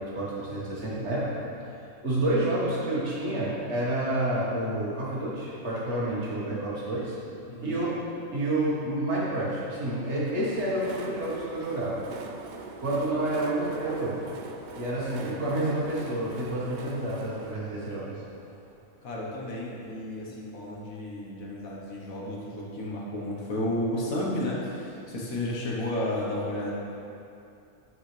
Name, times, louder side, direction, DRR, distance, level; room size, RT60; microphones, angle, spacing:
voice 1, 0.0-1.4 2.0-7.2 7.6-8.0 8.3-12.0 12.8-14.3 14.8-18.1, right 1 dB, 55° right, -6 dB, 1.8 m, -29 dB
voice 2, 7.5-7.8 15.2-15.4 19.0-26.7, left 1 dB, 85° left, -4 dB, 1.6 m, -32 dB
Train, 9.8-19.4, right 4 dB, 80° right, 0.4 m, -44 dB
9.2 x 5.7 x 3.3 m, 2.7 s
omnidirectional pair, 1.4 m